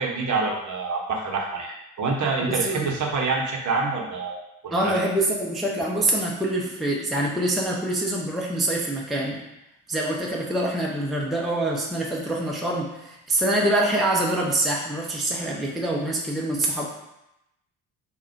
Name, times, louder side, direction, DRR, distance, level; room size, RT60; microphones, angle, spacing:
voice 1, 0.0-4.4 4.6-4.9, right 4 dB, 40° right, -1 dB, 0.9 m, -26 dB
voice 2, 2.5-2.9 4.7-9.5 9.9-16.9, right 1 dB, ahead, -3 dB, 0.6 m, -25 dB
3.6 x 2.2 x 4.4 m, 0.87 s
figure-of-eight pair, 40°, 45 cm